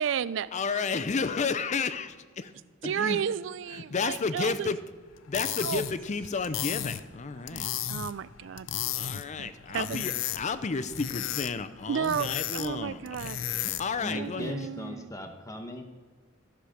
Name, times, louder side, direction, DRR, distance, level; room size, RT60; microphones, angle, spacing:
voice 1, 0.0-0.9 2.8-4.7 5.6-5.8 7.4-8.7 9.1-10.0 11.9-13.4 14.1-15.1, right 8 dB, 70° right, 18 dB, 0.3 m, -33 dB
voice 2, 0.5-2.5 2.8-3.2 3.7-4.8 5.3-7.7 8.9-14.5, left 4 dB, 40° left, 12 dB, 0.5 m, -32 dB
sound 1, 5.1-14.0, left 11 dB, 85° left, 0.5 m, -35 dB
voice 3, 14.0-15.8, left 1 dB, 15° left, 5 dB, 1.0 m, -37 dB
14.5 x 5.0 x 6.4 m, 1.5 s
head